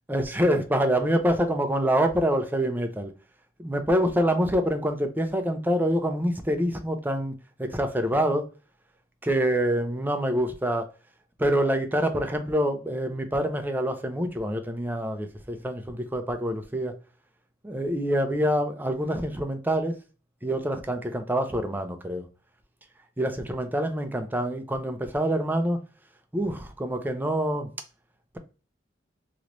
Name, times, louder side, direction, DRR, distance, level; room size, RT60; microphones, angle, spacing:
voice 1, 0.1-3.1 3.6-7.3 7.6-8.4 9.2-10.9 11.4-16.9 17.6-19.9 20.4-22.2 23.2-25.8 26.3-27.7, equal, 10° right, 0.5 m, -26 dB
3.1 x 3.0 x 2.5 m
head